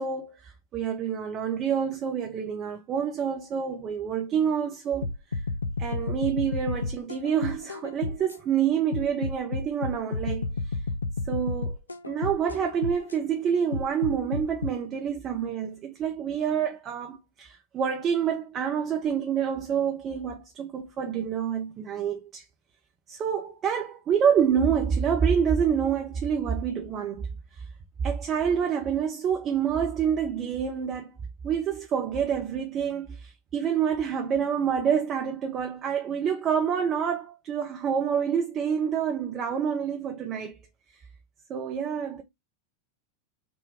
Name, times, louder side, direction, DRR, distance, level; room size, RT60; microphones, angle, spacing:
voice 1, 0.0-5.1 5.8-10.8 11.3-11.8 12.1-22.4 23.1-27.3 27.6-27.7 28.0-31.2 31.4-40.6 41.5-42.2, right 7 dB, 30° right, 0.6 m, -27 dB
sound 1, 5.0-8.4 8.9-13.2 13.7-14.7, left 3 dB, 80° left, 0.3 m, -31 dB
3.7 x 2.2 x 3.4 m
figure-of-eight pair, 90°, 0 cm